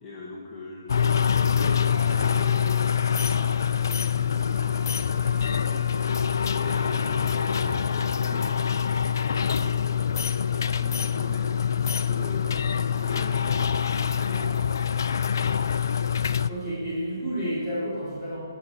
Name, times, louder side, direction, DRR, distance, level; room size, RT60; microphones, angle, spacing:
voice 1, 0.0-6.2 6.5-8.7 9.2-14.5, left 2 dB, 5° left, -9 dB, 1.2 m, -40 dB
sound 1, 0.9-16.5, left 7 dB, 55° left, 0.4 m, -25 dB
Wind instrument woodwind instrument, 4.4-9.5, left 2 dB, 35° left, 1.5 m, -43 dB
voice 2, 16.5-18.4, equal, 20° right, -11 dB, 3.0 m, -30 dB
13.0 x 6.2 x 7.1 m, 2.1 s
hypercardioid pair, 170°, 2 cm